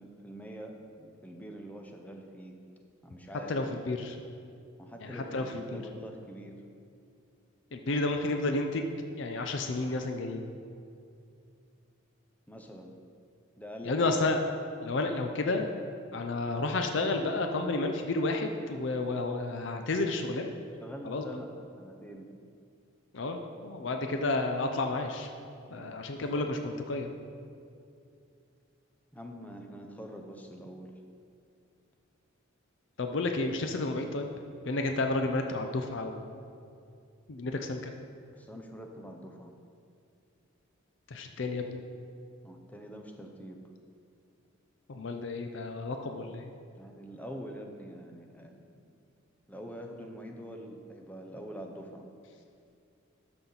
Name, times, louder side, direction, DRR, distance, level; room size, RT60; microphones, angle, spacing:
voice 1, 0.0-2.6 3.0-3.6 4.8-6.6 12.5-12.9 13.6-14.2 20.8-21.5 21.8-22.3 25.7-26.4 29.1-31.0 38.3-39.5 42.4-43.6 46.8-48.6 49.5-52.1, equal, 10° left, 2 dB, 0.7 m, -45 dB
voice 2, 3.5-4.2 5.0-5.8 7.7-8.9 9.2-10.5 13.8-14.4 14.8-15.7 16.1-20.5 21.0-21.2 23.1-25.3 25.7-27.1 33.0-34.3 34.6-36.3 37.3-37.9 41.1-41.8 44.9-46.5, left 2 dB, 60° left, 5 dB, 0.5 m, -31 dB
12.5 x 5.8 x 3.9 m, 2.4 s
head